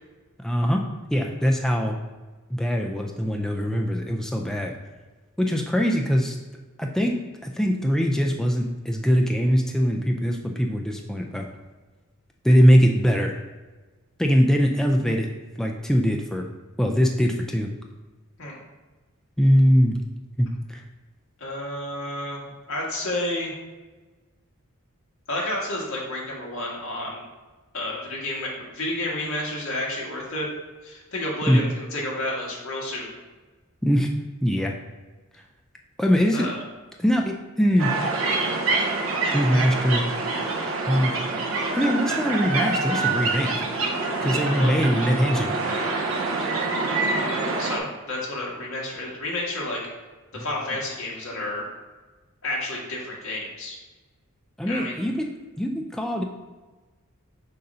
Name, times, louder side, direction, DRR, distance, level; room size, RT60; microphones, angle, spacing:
voice 1, 0.4-0.8 1.1-2.0 2.5-4.7 5.4-6.4 6.8-11.5 12.4-13.3 14.2-15.3 15.6-16.5 16.8-17.7 19.4-20.0 20.4-20.8 31.5-31.6 33.8-34.1 34.4-34.7 36.0-36.5 37.0-37.9 39.3-40.0 40.9-41.1 41.7-43.7 44.2-45.5 50.4-50.5 54.6-55.3 55.6-56.2, equal, ahead, 1 dB, 0.3 m, -22 dB
voice 2, 21.4-22.4 22.7-23.5 25.3-27.2 27.7-30.5 30.8-33.1 36.3-36.6 44.6-44.7 46.8-49.8 50.3-51.7 52.4-53.8 54.6-55.0, left 1 dB, 65° left, -4 dB, 1.7 m, -30 dB
sound 1, 37.8-47.8, right 3 dB, 70° right, 0.8 m, -26 dB
6.7 x 2.6 x 5.4 m, 1.3 s
head